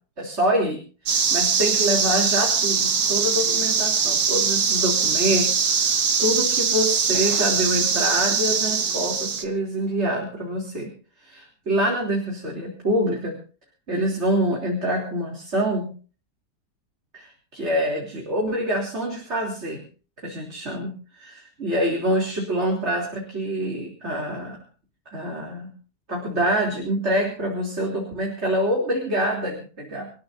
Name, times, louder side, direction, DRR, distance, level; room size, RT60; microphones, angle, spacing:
voice 1, 0.2-0.8 1.1-10.9 11.2-13.4 13.9-15.9 17.1-19.8 20.2-24.6 25.1-25.7 26.1-30.1, equal, 40° right, -1 dB, 3.8 m, -26 dB
sound 1, 1.1-9.4, right 6 dB, 80° right, 2.3 m, -22 dB
26.5 x 14.5 x 2.8 m, 0.38 s
omnidirectional pair, 1.8 m